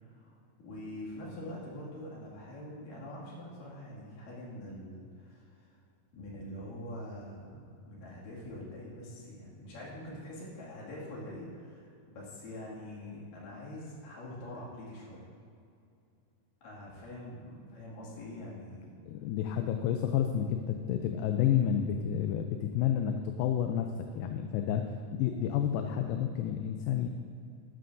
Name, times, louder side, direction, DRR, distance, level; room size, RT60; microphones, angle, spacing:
voice 1, 0.6-5.7 6.1-15.2 16.6-18.9, left 1 dB, 70° left, -6 dB, 3.8 m, -44 dB
voice 2, 19.1-27.1, left 9 dB, 85° left, 5 dB, 2.3 m, -30 dB
12.5 x 11.0 x 2.6 m, 2.5 s
omnidirectional pair, 4.1 m